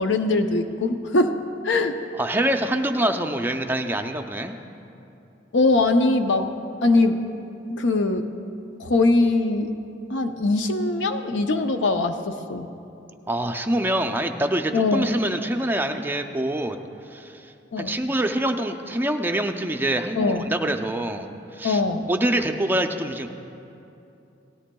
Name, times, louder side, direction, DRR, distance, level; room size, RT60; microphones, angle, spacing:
voice 1, 0.0-1.4 1.6-2.0 5.5-6.5 6.8-7.2 7.7-8.3 8.8-9.7 10.1-12.7 14.7-15.1 17.7-18.0 20.1-20.5 21.6-22.1, left 2 dB, 75° left, 7 dB, 0.6 m, -21 dB
voice 2, 2.2-4.5 13.3-16.8 17.1-21.3 21.5-21.8 22.1-23.3, right 1 dB, 10° right, 5 dB, 0.4 m, -25 dB
17.5 x 13.0 x 2.3 m, 2.7 s
head